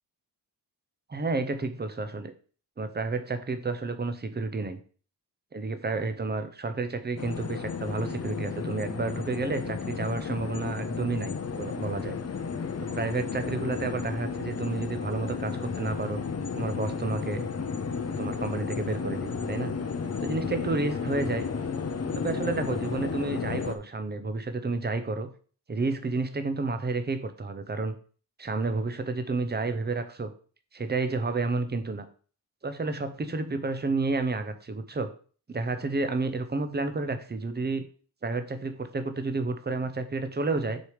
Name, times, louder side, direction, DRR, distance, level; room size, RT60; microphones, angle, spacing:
voice 1, 1.1-2.3 2.8-4.8 5.5-12.2 12.9-16.2 16.6-17.4 18.2-19.7 20.2-21.5 22.2-25.3 25.7-28.0 28.4-30.3 30.7-32.1 32.6-35.1 35.5-37.8 38.2-40.8, right 3 dB, 25° right, 9 dB, 0.7 m, -30 dB
sound 1, 7.2-23.8, left 5 dB, 35° left, 0.7 m, -33 dB
6.5 x 4.8 x 4.9 m, 0.41 s
wide cardioid pair, 170°, 42 cm